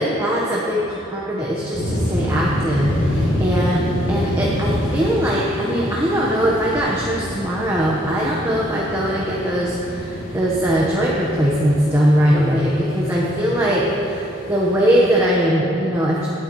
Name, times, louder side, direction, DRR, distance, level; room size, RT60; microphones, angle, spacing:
voice 1, 0.0-16.3, equal, 15° right, -5 dB, 1.3 m, -20 dB
sound 1, 1.7-15.1, equal, 75° left, 3.1 m, -27 dB
19.5 x 13.0 x 3.2 m, 2.8 s
head